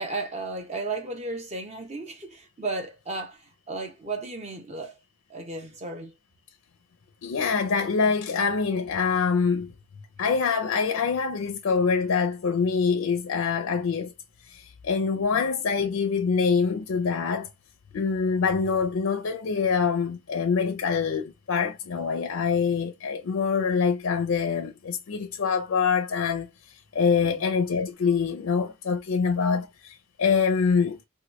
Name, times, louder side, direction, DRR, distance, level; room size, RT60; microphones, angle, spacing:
voice 1, 0.0-5.0 5.3-6.2 15.1-15.5 27.2-27.5 29.5-29.7, right 3 dB, 30° right, 0.7 m, -34 dB
voice 2, 7.2-9.7 10.2-14.1 14.5-17.5 17.9-26.5 26.9-31.0, left 5 dB, 85° left, 0.5 m, -25 dB
3.0 x 2.2 x 2.9 m
head